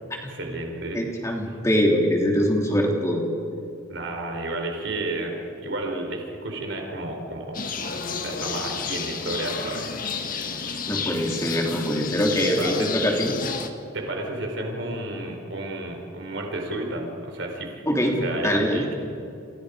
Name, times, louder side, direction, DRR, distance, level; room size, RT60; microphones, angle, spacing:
voice 1, 0.3-1.0 3.9-7.7 8.1-9.9 10.8-10.9 12.6-12.9 13.9-18.9, right 2 dB, 65° right, 2 dB, 4.1 m, -32 dB
voice 2, 0.9-3.3 10.9-13.3 17.9-18.9, equal, 15° left, 0 dB, 3.3 m, -23 dB
sound 1, 7.5-13.7, left 5 dB, 45° left, 1.7 m, -31 dB
29.5 x 26.5 x 5.1 m, 2.6 s
head